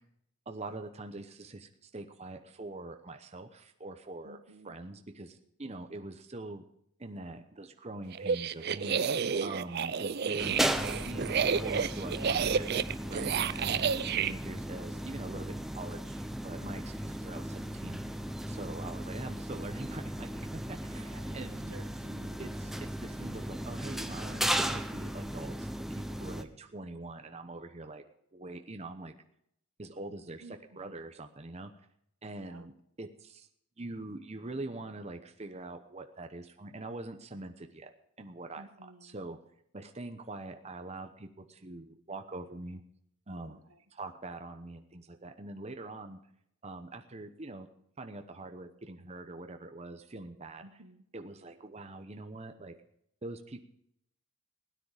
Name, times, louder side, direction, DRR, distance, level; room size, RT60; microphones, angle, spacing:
voice 1, 0.5-4.4 4.6-6.6 7.0-11.3 11.6-12.8 13.1-18.2 18.5-21.7 22.4-22.7 23.0-28.0 28.3-29.1 29.8-31.7 32.2-32.7 33.0-33.5 33.8-39.4 39.7-42.8 43.3-43.6 43.9-46.2 46.6-47.7 48.0-50.6 51.1-52.7 53.2-53.6, right 2 dB, 30° right, 6 dB, 0.9 m, -43 dB
voice 2, 4.2-4.7 9.1-9.6 21.0-22.5 30.4-30.9 32.3-32.7 38.6-39.2 43.5-43.8 50.6-51.0, right 2 dB, 80° right, 9 dB, 1.3 m, -54 dB
sound 1, 8.1-14.3, right 6 dB, 50° right, 0.5 m, -30 dB
sound 2, 10.4-26.4, right 1 dB, ahead, 0.7 m, -36 dB
17.0 x 9.9 x 4.9 m, 0.73 s
head